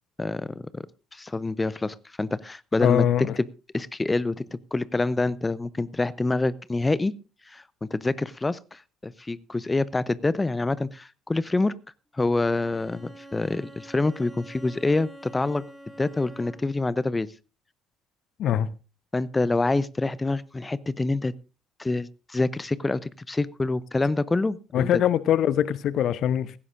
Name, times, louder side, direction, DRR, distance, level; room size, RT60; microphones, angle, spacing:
voice 1, 0.2-0.8 1.1-3.1 3.4-3.5 3.7-7.1 7.5-11.7 12.1-15.6 16.0-17.3 19.1-21.3 21.8-24.9, left 2 dB, 15° left, 0.6 m, -26 dB
voice 2, 2.8-3.4 18.4-18.7 24.7-26.5, left 10 dB, 50° left, 0.6 m, -22 dB
Bowed string instrument, 12.4-16.9, right 1 dB, ahead, 3.5 m, -46 dB
16.0 x 15.5 x 2.5 m
figure-of-eight pair, 55°, 0 cm